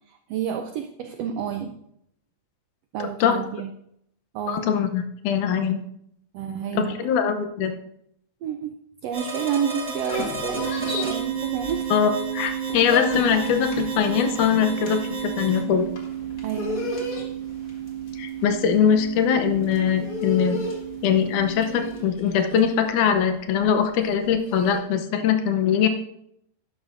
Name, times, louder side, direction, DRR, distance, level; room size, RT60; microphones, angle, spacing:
voice 1, 0.1-1.8 2.9-3.7 4.3-4.7 6.3-7.1 8.4-8.7 9.0-11.9 16.4-16.9, right 8 dB, 85° right, 6 dB, 1.4 m, -30 dB
voice 2, 3.0-3.4 4.5-5.8 6.7-7.8 11.9-15.9 18.2-20.6 21.0-25.9, left 7 dB, 80° left, 7 dB, 2.3 m, -22 dB
sound 1, 9.1-15.6, right 2 dB, 20° right, 1.3 m, -35 dB
sound 2, 9.8-12.2 12.5-24.8, left 3 dB, 40° left, 1.3 m, -34 dB
sound 3, 10.5-22.0, right 11 dB, 60° right, 1.3 m, -32 dB
11.5 x 10.5 x 2.6 m, 0.73 s
omnidirectional pair, 3.5 m